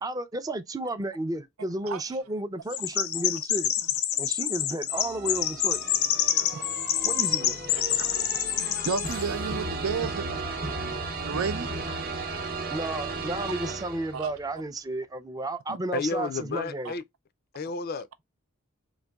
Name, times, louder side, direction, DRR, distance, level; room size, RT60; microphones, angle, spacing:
voice 1, 0.0-3.7 4.2-5.8 7.0-7.6 12.7-16.9, right 1 dB, 15° right, 0.4 m, -32 dB
Chirp tweet, 2.7-9.2, left 10 dB, 85° left, 0.6 m, -27 dB
sound 1, 4.9-14.4, right 3 dB, 45° right, 0.7 m, -35 dB
voice 2, 6.4-6.7 8.0-8.2 8.5-8.9 9.4-9.5 11.7-12.1 15.9-17.0 17.5-18.2, left 4 dB, 45° left, 0.4 m, -34 dB
voice 3, 7.9-8.3 8.8-10.4 11.2-11.7 12.0-12.1 14.1-14.3 16.9-17.0, right 5 dB, 80° right, 0.5 m, -32 dB
3.9 x 2.5 x 2.2 m
head